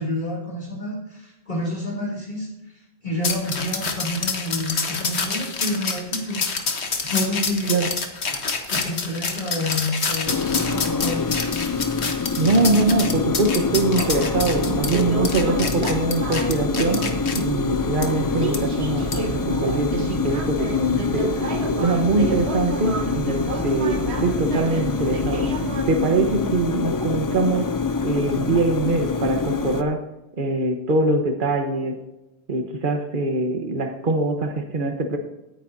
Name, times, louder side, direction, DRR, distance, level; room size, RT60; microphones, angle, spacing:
voice 1, 0.0-2.5 2.7-6.4 7.0-7.8 8.3-11.3, left 1 dB, 50° left, -4 dB, 3.1 m, -29 dB
sound 1, 3.2-17.4 18.0-18.1 18.5-18.6 19.1-19.3, left 4 dB, 85° left, 1.6 m, -27 dB
sound 2, 10.3-29.8, left 4 dB, 30° left, 0.3 m, -26 dB
voice 2, 12.4-17.1 17.3-21.3 21.8-25.5 25.9-27.7 28.0-30.0 30.4-32.0 32.5-35.2, right 2 dB, 50° right, 4 dB, 1.4 m, -23 dB
sound 3, 14.0-25.8, right 2 dB, 80° right, 1.4 m, -30 dB
17.0 x 9.5 x 2.7 m, 0.95 s
omnidirectional pair, 1.1 m